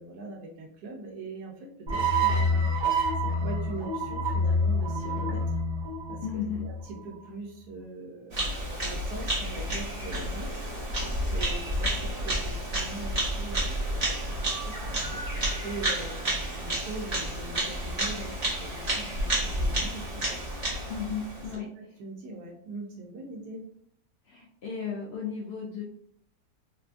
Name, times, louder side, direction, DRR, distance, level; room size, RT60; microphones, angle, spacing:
voice 1, 0.0-2.7 3.2-5.4 6.1-10.7 11.3-18.3 18.6-20.4 21.8-23.6, right 3 dB, 85° right, -1 dB, 1.1 m, -42 dB
sound 1, 1.9-7.1, equal, 55° right, 0.5 m, -27 dB
voice 2, 6.2-6.6 20.9-21.7 24.3-25.8, left 7 dB, 80° left, -2 dB, 0.5 m, -34 dB
Bird vocalization bird call bird song, 8.3-21.6, right 1 dB, 30° right, 0.8 m, -30 dB
3.6 x 2.3 x 2.4 m, 0.66 s
omnidirectional pair, 1.6 m